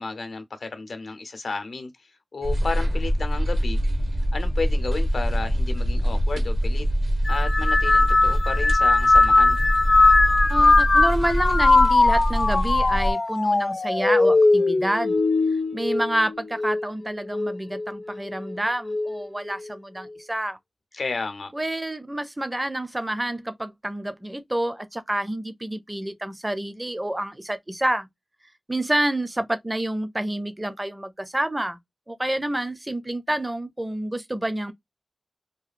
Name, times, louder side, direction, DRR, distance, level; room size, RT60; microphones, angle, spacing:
voice 1, 0.0-1.9 2.3-3.8 4.3-6.9 7.3-9.6 20.9-21.5, left 3 dB, 85° left, 0.7 m, -32 dB
sound 1, 2.4-13.1, equal, 65° right, 0.7 m, -24 dB
sound 2, 7.2-16.9 17.3-17.9 18.9-19.2, left 3 dB, 50° left, 0.4 m, -20 dB
voice 2, 10.5-15.2 15.5-20.6 21.5-28.1 28.7-31.8 32.1-34.7, right 1 dB, 20° right, 0.4 m, -28 dB
2.7 x 2.3 x 2.4 m
wide cardioid pair, 85°, 0 cm